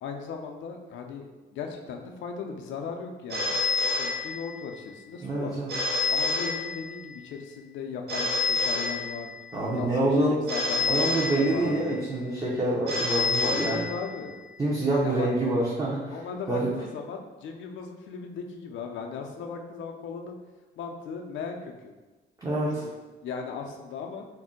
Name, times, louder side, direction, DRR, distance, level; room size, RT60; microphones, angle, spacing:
voice 1, 0.0-1.2 1.5-3.5 4.0-5.5 6.1-12.0 13.6-14.4 15.0-15.3 16.1-20.4 20.8-21.9 23.2-24.3, left 5 dB, 75° left, 3 dB, 0.5 m, -37 dB
Telephone, 3.3-4.8 5.7-7.2 8.1-9.6 10.5-12.0 12.9-14.4, left 3 dB, 55° right, 0.7 m, -28 dB
voice 2, 5.2-5.7 9.5-10.4 10.8-13.9 14.6-16.2 16.5-16.7 22.4-22.8, right 2 dB, 20° right, -7 dB, 0.6 m, -26 dB
2.5 x 2.1 x 3.7 m, 1.2 s
cardioid pair, 90°, 20 cm